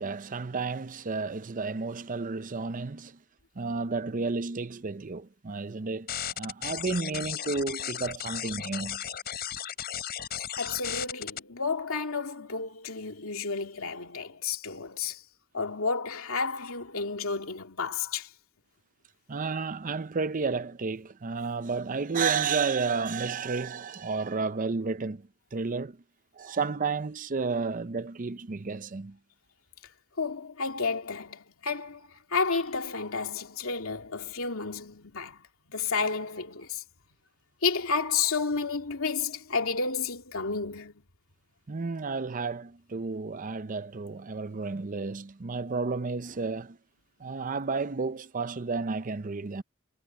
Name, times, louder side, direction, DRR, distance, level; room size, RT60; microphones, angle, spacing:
voice 1, 0.0-3.2 3.6-9.0 19.3-25.2 25.5-26.0 26.4-29.2 41.7-46.8 47.2-49.6, right 4 dB, 40° right, 0.6 m, -32 dB
sound 1, 6.1-11.4, left 9 dB, 50° left, 4.7 m, -35 dB
voice 2, 10.6-15.2 15.5-18.3 30.2-35.4 35.7-36.8 37.6-40.9, left 4 dB, 80° left, 2.6 m, -31 dB
head